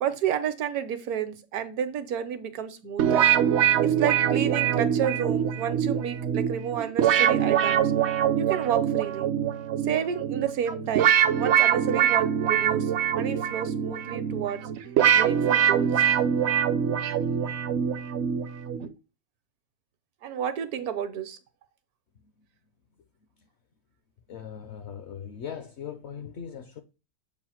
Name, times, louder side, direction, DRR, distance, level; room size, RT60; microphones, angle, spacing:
voice 1, 0.0-3.3 3.8-7.9 8.4-9.3 9.9-14.6 15.1-16.0 20.2-21.4, right 9 dB, 80° right, 1.3 m, -30 dB
sound 1, 3.0-18.9, right 9 dB, 65° right, 0.7 m, -24 dB
voice 2, 24.3-26.8, left 8 dB, 60° left, 0.8 m, -39 dB
7.2 x 2.5 x 5.7 m
omnidirectional pair, 1.5 m